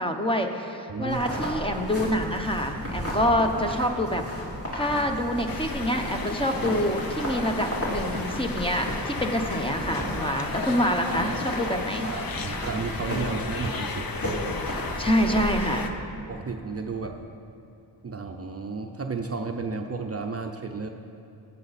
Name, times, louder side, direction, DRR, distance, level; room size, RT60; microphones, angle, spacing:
voice 1, 0.0-4.2 4.7-12.1 15.0-15.9, equal, 10° left, 3 dB, 0.9 m, -26 dB
voice 2, 0.9-1.3 12.0-14.1 16.3-17.3 18.0-20.9, right 4 dB, 35° right, 4 dB, 0.6 m, -33 dB
sound 1, 1.1-15.6, equal, 30° left, 2.9 m, -33 dB
sound 2, 5.5-15.9, left 4 dB, 50° left, 0.9 m, -35 dB
15.0 x 8.8 x 4.2 m, 2.7 s
cardioid pair, 90°, 44 cm